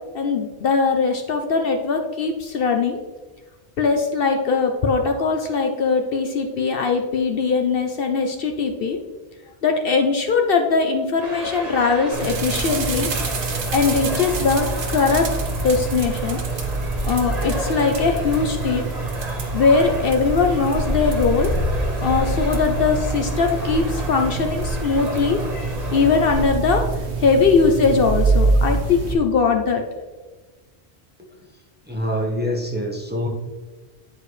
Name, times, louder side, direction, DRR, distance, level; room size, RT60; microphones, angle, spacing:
voice 1, 0.1-3.0 3.8-9.0 9.6-13.1 13.7-14.7 14.9-15.3 15.6-16.4 17.0-18.9 19.5-21.5 22.0-25.4 25.9-26.8 27.2-29.8, left 4 dB, 60° left, 4 dB, 0.8 m, -20 dB
sound 1, 11.2-26.4, equal, 35° right, 1.6 m, -30 dB
sound 2, 12.1-29.1, right 3 dB, 75° right, 1.2 m, -26 dB
voice 2, 31.9-33.3, equal, 10° right, -1 dB, 1.0 m, -25 dB
10.5 x 4.7 x 3.2 m, 1.3 s
omnidirectional pair, 1.1 m